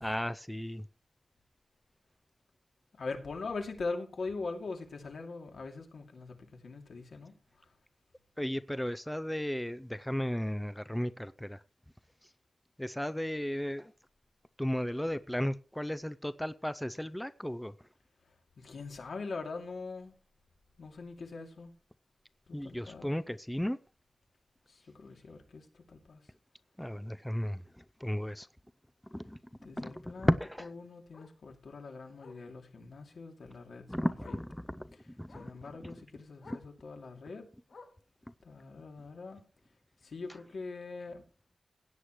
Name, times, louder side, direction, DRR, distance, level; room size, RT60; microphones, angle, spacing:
voice 1, 0.0-0.9 8.4-11.6 12.8-13.9 14.6-17.7 22.5-23.8 26.8-28.5 29.1-30.7 33.9-35.5 35.8-35.9 36.5-36.6, equal, 5° left, 0.5 m, -35 dB
voice 2, 3.0-7.3 18.6-20.1 20.8-21.7 22.5-23.1 24.7-26.2 29.6-30.3 30.6-34.4 35.4-37.4 38.4-39.4 40.0-41.2, left 3 dB, 85° left, 2.6 m, -42 dB
Bark, 24.7-24.8 25.2-25.4 25.7-25.8 26.1-26.2 27.6-27.7 30.2-30.3 31.1-31.4 32.2-32.5 33.7-33.8 34.2-34.5 35.3-35.6 36.4-36.7 37.7-38.1 39.1-39.2, left 3 dB, 65° left, 1.6 m, -54 dB
16.5 x 9.6 x 3.1 m
wide cardioid pair, 115°, 0 cm